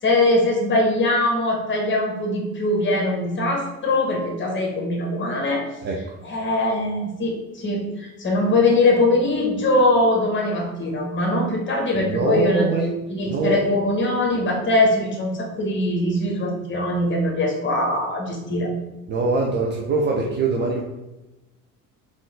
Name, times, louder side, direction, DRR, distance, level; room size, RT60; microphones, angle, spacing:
voice 1, 0.0-5.6 6.3-12.6 13.1-18.7, left 2 dB, 25° left, -1 dB, 1.1 m, -21 dB
voice 2, 5.8-6.2 11.9-12.9 13.2-13.6 19.1-20.8, right 3 dB, 25° right, -1 dB, 0.4 m, -23 dB
3.7 x 2.4 x 3.4 m, 1.0 s
figure-of-eight pair, 60°, 44 cm